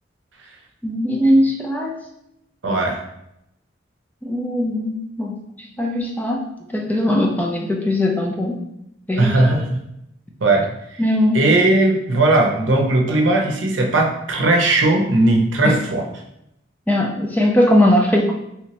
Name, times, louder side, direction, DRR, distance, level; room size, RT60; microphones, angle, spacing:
voice 1, 0.8-1.9 4.2-6.5 6.7-8.6 9.1-9.6 11.0-11.4 15.6-15.8 16.9-18.4, left 1 dB, 10° left, -1 dB, 0.4 m, -19 dB
voice 2, 2.6-3.0 9.2-9.6 10.4-11.0 11.3-16.1, right 2 dB, 75° right, 1 dB, 0.6 m, -17 dB
3.3 x 3.0 x 2.9 m, 0.81 s
head